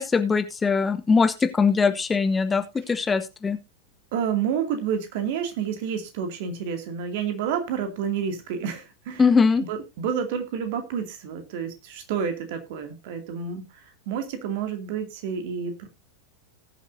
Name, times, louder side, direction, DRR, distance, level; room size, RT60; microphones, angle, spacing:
voice 1, 0.0-3.6 9.2-9.6, left 5 dB, 15° left, 10 dB, 0.9 m, -21 dB
voice 2, 4.1-9.3 9.7-15.9, right 7 dB, 50° right, 6 dB, 2.4 m, -29 dB
19.5 x 7.1 x 2.7 m, 0.24 s
figure-of-eight pair, 90°, 0 cm